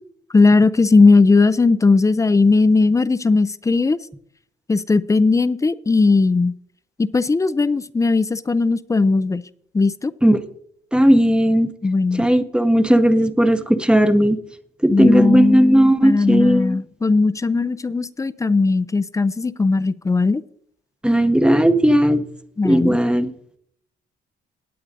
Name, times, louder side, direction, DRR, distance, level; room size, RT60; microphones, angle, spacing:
voice 1, 0.3-4.0 4.7-6.5 7.0-9.4 9.7-10.1 11.8-12.3 14.9-20.4 22.6-23.0, left 3 dB, 15° left, 16 dB, 0.4 m, -17 dB
voice 2, 10.9-11.7 12.1-14.4 14.8-16.8 21.0-22.2 22.6-23.3, equal, 5° right, 11 dB, 0.7 m, -16 dB
18.0 x 8.6 x 2.6 m, 0.68 s
cardioid pair, 90°, 20 cm